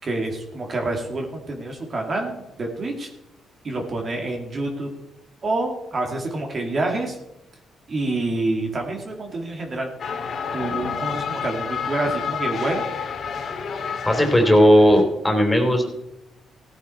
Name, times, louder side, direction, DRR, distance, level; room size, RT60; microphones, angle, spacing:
voice 1, 0.0-3.1 3.6-4.9 5.4-7.2 7.9-9.9 10.5-12.8, right 2 dB, 40° right, 1 dB, 2.7 m, -27 dB
sound 1, 10.0-15.0, left 6 dB, 60° left, 2.1 m, -29 dB
voice 2, 14.0-15.8, equal, 10° left, 3 dB, 3.4 m, -16 dB
16.0 x 9.3 x 4.6 m, 0.91 s
cardioid pair, 90°, 0 cm